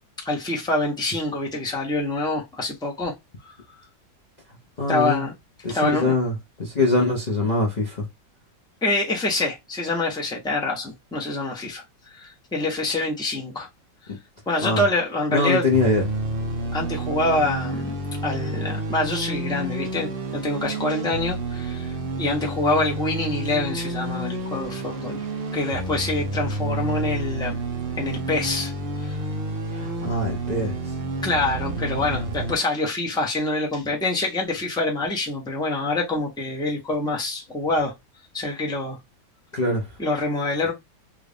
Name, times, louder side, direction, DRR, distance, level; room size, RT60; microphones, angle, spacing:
voice 1, 0.2-3.1 3.4-3.5 4.9-5.3 5.7-6.1 8.8-13.7 14.5-15.7 16.7-17.9 18.2-25.2 25.5-27.6 28.0-28.7 29.0-29.2 31.2-37.9 38.3-39.0 40.0-40.7, left 2 dB, 5° left, 0.5 m, -26 dB
voice 2, 4.8-5.2 5.6-8.1 14.1-14.2 14.6-14.8 15.3-16.0 29.7-30.9 39.5-39.9, left 2 dB, 60° left, 0.4 m, -23 dB
sound 1, 15.7-32.5, right 1 dB, 55° right, 0.6 m, -29 dB
3.3 x 2.5 x 3.3 m
omnidirectional pair, 2.1 m